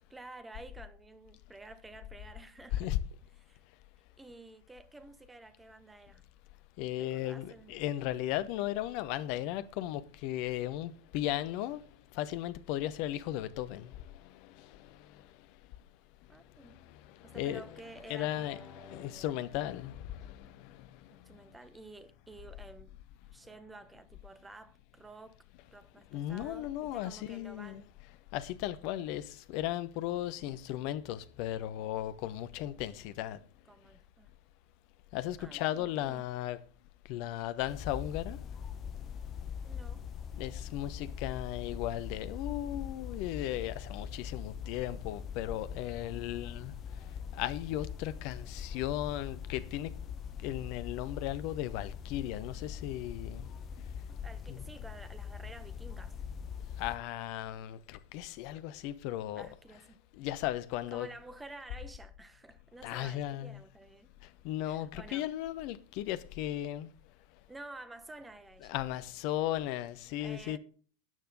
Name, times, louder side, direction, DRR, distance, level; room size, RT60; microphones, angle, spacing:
voice 1, 0.0-2.9 3.4-3.6 4.2-6.3 7.0-7.8 16.3-16.8 17.2-19.5 21.1-22.9 23.2-27.9 33.6-34.3 35.4-36.3 39.6-40.1 45.8-46.1 54.1-56.2 59.3-60.0 60.9-64.1 64.6-65.3 67.5-68.8 70.0-70.6, right 2 dB, 10° right, 1.4 m, -51 dB
voice 2, 6.8-11.8 12.1-15.2 16.6-17.6 18.1-21.0 26.1-27.8 28.3-33.4 35.1-36.6 37.1-38.4 40.4-46.7 47.3-49.9 50.4-53.5 54.5-54.6 56.8-59.5 60.2-61.1 62.8-63.5 64.4-66.9 68.7-70.6, left 13 dB, 50° left, 1.0 m, -36 dB
sound 1, 37.7-57.0, left 7 dB, 30° left, 1.3 m, -42 dB
14.0 x 9.1 x 3.9 m
figure-of-eight pair, 85°, 0 cm